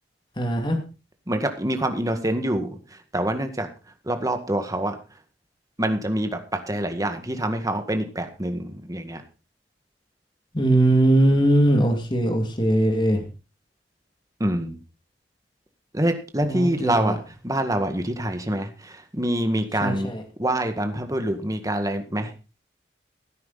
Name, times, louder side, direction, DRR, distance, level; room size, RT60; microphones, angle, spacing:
voice 1, 0.4-0.8 10.5-13.2 16.4-17.2 19.8-20.2, right 1 dB, 25° left, 5 dB, 2.5 m, -20 dB
voice 2, 1.3-2.7 3.1-3.7 4.1-5.0 5.8-9.2 14.4-14.8 15.9-17.2 17.4-20.1 20.4-22.3, right 1 dB, 20° right, 7 dB, 1.9 m, -25 dB
16.5 x 9.5 x 4.1 m, 0.31 s
head